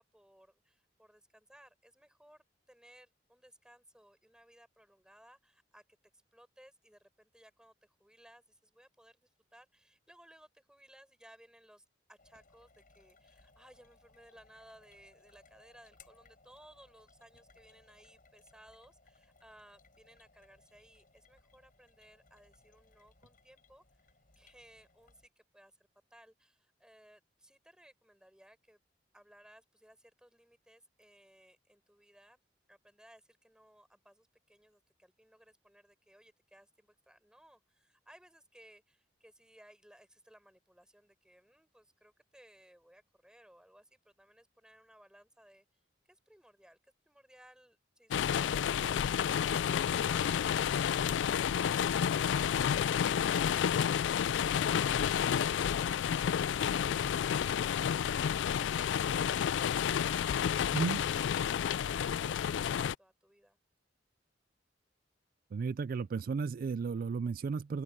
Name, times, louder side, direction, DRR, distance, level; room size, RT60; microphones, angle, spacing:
voice 1, 0.0-5.8 6.3-23.8 24.1-25.7 26.1-28.8 29.1-32.4 32.7-45.7 46.1-53.2 53.5-53.9 54.2-61.0 61.5-63.6, equal, 5° right, 5.6 m, -61 dB
sound 1, 12.2-25.3, left 3 dB, 50° left, 7.3 m, -65 dB
sound 2, 48.1-62.9, left 8 dB, 80° left, 0.3 m, -30 dB
voice 2, 60.7-61.0 65.5-67.8, right 5 dB, 50° right, 0.3 m, -34 dB
open air
head